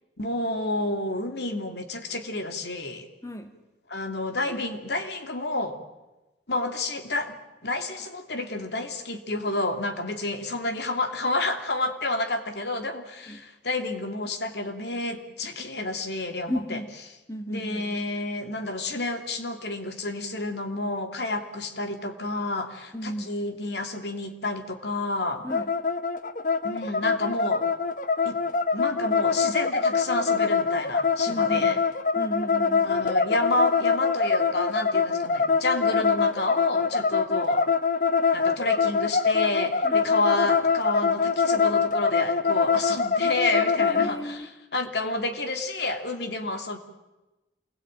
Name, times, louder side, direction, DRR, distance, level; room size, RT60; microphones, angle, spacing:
voice 1, 0.2-3.1 3.9-5.8 6.5-7.4 7.6-16.8 17.5-25.4 26.6-27.6 28.2-28.4 28.7-31.8 32.8-37.6 38.3-46.8, left 2 dB, 75° left, 6 dB, 2.9 m, -30 dB
voice 2, 3.2-3.6 13.3-13.5 16.5-17.0 17.3-18.1 22.9-23.4 25.4-25.8 31.3-31.9 32.2-33.0 39.8-40.1 43.8-44.5, equal, 15° left, 7 dB, 2.1 m, -35 dB
sound 1, 25.5-44.1, left 5 dB, 45° left, 1.0 m, -24 dB
27.5 x 21.0 x 9.0 m, 1.0 s
head